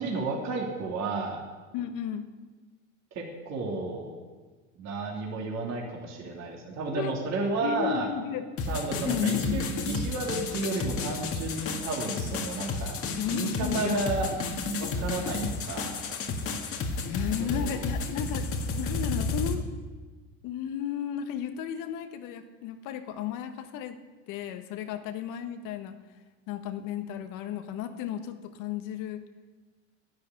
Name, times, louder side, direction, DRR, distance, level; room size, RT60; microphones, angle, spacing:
voice 1, 0.0-1.4 3.1-4.2 4.8-8.1 8.7-13.0 13.3-14.3 14.8-16.0 17.5-17.8, right 3 dB, 45° right, -1 dB, 3.2 m, -32 dB
voice 2, 1.7-2.3 6.9-8.5 9.0-9.6 13.2-14.0 17.1-19.7 20.4-24.0 24.3-26.0 26.5-29.2, left 9 dB, 60° left, 7 dB, 1.5 m, -34 dB
sound 1, 8.6-19.5, left 3 dB, 40° left, 1.9 m, -32 dB
11.0 x 10.5 x 8.4 m, 1.4 s
hypercardioid pair, 90°, 36 cm